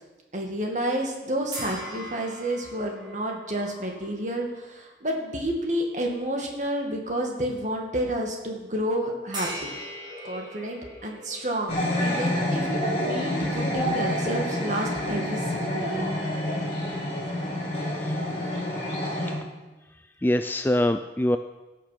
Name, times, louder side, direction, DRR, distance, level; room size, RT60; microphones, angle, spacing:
voice 1, 0.3-9.7 10.2-16.1, right 1 dB, 45° right, 1 dB, 2.1 m, -30 dB
sound 1, 1.5-5.0 5.6-5.7 9.3-15.7, equal, 25° right, 4.0 m, -42 dB
sound 2, 11.7-19.3, left 1 dB, 35° left, 3.0 m, -28 dB
voice 2, 17.8-18.2 20.2-21.4, left 1 dB, 10° left, 9 dB, 0.3 m, -24 dB
16.5 x 6.7 x 5.9 m, 1.1 s
head